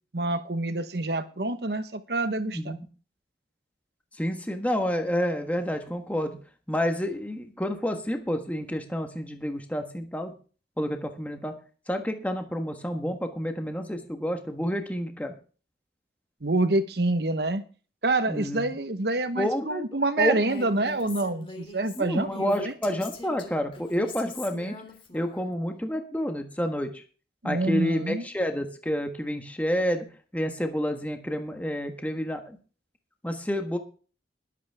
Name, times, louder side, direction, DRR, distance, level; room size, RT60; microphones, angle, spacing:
voice 1, 0.1-2.8 16.4-17.6 18.0-22.7 27.4-28.2, right 2 dB, 65° right, 11 dB, 1.2 m, -27 dB
voice 2, 2.5-2.9 4.2-6.4 6.7-10.3 10.8-11.5 11.9-15.3 18.3-18.6 19.4-19.8 20.2-20.4 22.0-24.7 25.1-27.0 27.4-30.1 30.3-32.6 33.2-33.8, equal, 10° left, 5 dB, 1.4 m, -29 dB
Female speech woman speaking, 20.4-25.5, left 2 dB, 30° left, 2.9 m, -42 dB
21.0 x 8.3 x 3.6 m, 0.37 s
head